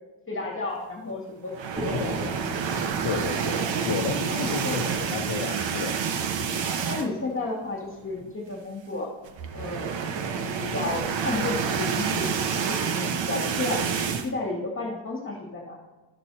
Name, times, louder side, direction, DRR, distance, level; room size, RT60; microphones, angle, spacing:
voice 1, 0.3-2.2 3.5-4.0 4.3-4.8 6.4-9.1 9.5-9.9 10.3-15.8, left 2 dB, 25° left, -2 dB, 2.2 m, -33 dB
sound 1, 1.5-7.3 7.7-7.8 8.1-8.2 9.3-14.3, right 6 dB, 65° right, 0.9 m, -28 dB
sound 2, 1.8-5.7, right 1 dB, 20° right, 1.0 m, -39 dB
voice 2, 1.9-2.3 3.0-3.6 3.8-6.0, left 6 dB, 70° left, 0 dB, 1.0 m, -31 dB
13.0 x 7.5 x 2.8 m, 1.2 s
cardioid pair, 135°, 49 cm